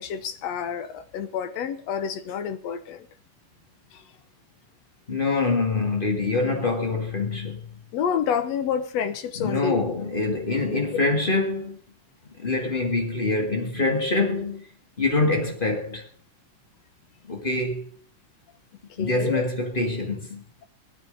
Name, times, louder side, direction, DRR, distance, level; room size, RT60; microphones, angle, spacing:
voice 1, 0.0-3.1 3.9-4.0 7.9-9.8 19.0-19.4, left 7 dB, 65° left, 2.0 m, -28 dB
voice 2, 5.1-7.8 9.3-11.8 12.4-14.7 15.0-16.1 17.3-17.9 19.0-20.4, left 3 dB, 20° left, 1.4 m, -25 dB
17.5 x 10.0 x 5.3 m
omnidirectional pair, 3.6 m